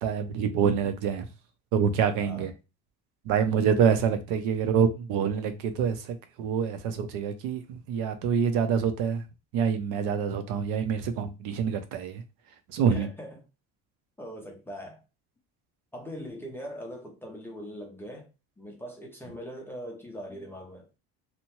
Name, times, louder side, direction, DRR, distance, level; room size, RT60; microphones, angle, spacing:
voice 1, 0.0-1.3 1.7-2.5 3.2-9.2 9.5-12.2 12.7-13.1, right 7 dB, 65° right, 0.6 m, -26 dB
voice 2, 2.2-2.5 3.5-3.6 12.9-13.4 14.2-15.0 15.9-18.3 18.6-20.9, equal, 5° left, 0.4 m, -41 dB
2.8 x 2.1 x 2.9 m
cardioid pair, 165°, 33 cm